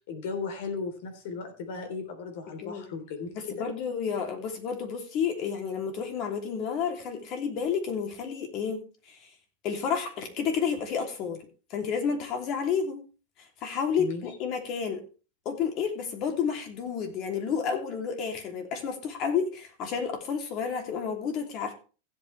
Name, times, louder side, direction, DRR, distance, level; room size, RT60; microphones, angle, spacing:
voice 1, 0.1-3.7 14.0-14.2, left 4 dB, 65° left, 7 dB, 3.6 m, -36 dB
voice 2, 3.5-9.2 9.6-11.4 11.7-13.0 13.6-15.0 15.4-21.7, left 6 dB, 40° left, 4 dB, 3.1 m, -30 dB
15.5 x 8.6 x 3.4 m, 0.35 s
supercardioid pair, 140°, 0 cm